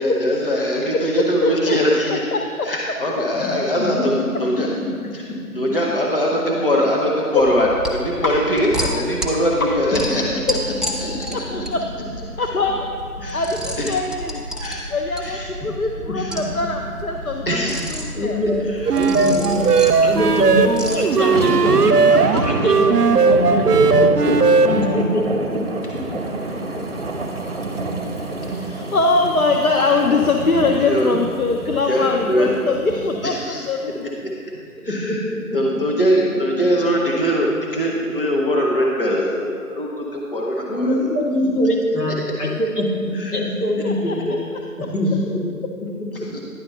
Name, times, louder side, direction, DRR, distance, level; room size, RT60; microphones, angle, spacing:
voice 1, 0.0-2.3 2.6-4.1 4.4-4.7 5.1-5.2 5.5-10.4 11.0-11.3 13.2-13.4 13.8-14.0 14.6-14.9 15.2-15.5 16.1-16.3 17.5-17.8 30.8-31.2 31.9-32.6 33.2-33.7 34.8-35.2 35.5-41.0 43.1-43.3 46.3-46.4, equal, 35° left, -2 dB, 0.8 m, -21 dB
voice 2, 0.9-1.8 2.3-2.7 7.3-7.4 8.2-8.4 9.6-9.7 11.3-11.8 12.4-12.9 13.3-14.4 14.9-18.4 21.5-21.8 22.1-22.2 28.4-34.0 43.8-44.2, left 3 dB, 65° left, 2 dB, 0.6 m, -22 dB
voice 3, 3.4-4.2 5.5-5.6 10.1-10.2 11.1-11.4 15.6-15.7 18.1-18.6 18.9-19.7 20.0-22.0 22.4-25.6 26.5-26.7 34.9-35.4 40.7-44.4 44.8-45.9, left 1 dB, 90° left, -3 dB, 1.8 m, -23 dB
sound 1, 7.4-20.9, right 1 dB, ahead, 0.4 m, -31 dB
sound 2, 18.9-25.0, right 4 dB, 80° right, 0.6 m, -16 dB
sound 3, 19.0-33.5 33.9-34.0, right 2 dB, 40° right, 0.8 m, -29 dB
10.0 x 3.7 x 5.6 m, 2.2 s
figure-of-eight pair, 165°, 46 cm